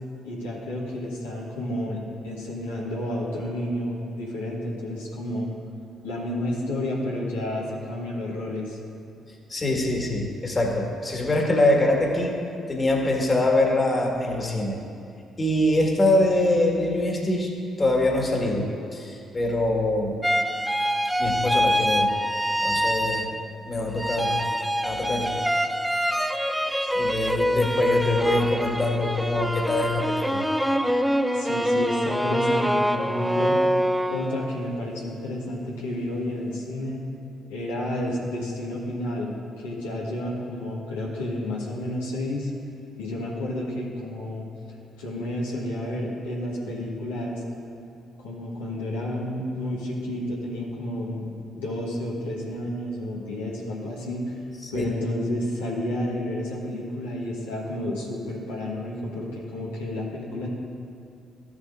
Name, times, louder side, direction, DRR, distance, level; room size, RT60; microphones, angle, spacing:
voice 1, 0.2-5.5 6.0-8.8 26.8-26.9 31.3-33.6 34.1-37.0 37.5-39.3 39.6-42.5 43.0-44.5 45.0-47.4 48.2-54.4 54.7-60.5, left 1 dB, 85° left, -6 dB, 1.4 m, -31 dB
voice 2, 9.5-12.4 12.7-14.8 15.4-18.7 18.9-20.2 21.2-22.1 22.6-23.3 23.6-24.4 24.8-25.4 26.1-26.4 26.9-30.4 54.6-54.9, left 1 dB, 30° left, 0 dB, 1.7 m, -24 dB
sound 1, 20.2-23.6 24.0-34.6, equal, 5° right, 0.4 m, -25 dB
14.0 x 7.2 x 2.6 m, 2.6 s
hypercardioid pair, 45°, 0 cm